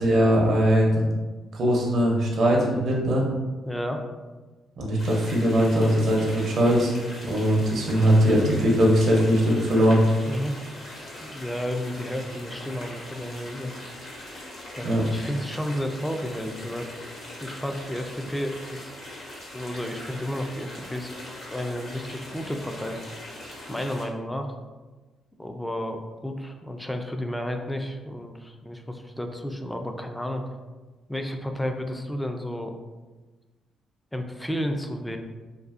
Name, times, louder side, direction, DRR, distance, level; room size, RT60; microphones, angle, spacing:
voice 1, 0.0-1.0 1.5-3.3 4.8-6.9 7.2-10.0 14.8-15.0, equal, 60° right, -3 dB, 0.6 m, -20 dB
voice 2, 3.7-4.0 10.2-10.6 11.2-13.7 14.8-16.9 17.4-18.9 19.5-23.0 23.7-24.6 25.4-30.5 31.1-32.8 34.1-35.2, equal, 5° left, 5 dB, 0.3 m, -32 dB
sound 1, 5.0-24.0, left 1 dB, 55° left, 0.8 m, -41 dB
2.7 x 2.5 x 2.4 m, 1.2 s
cardioid pair, 90°, 0 cm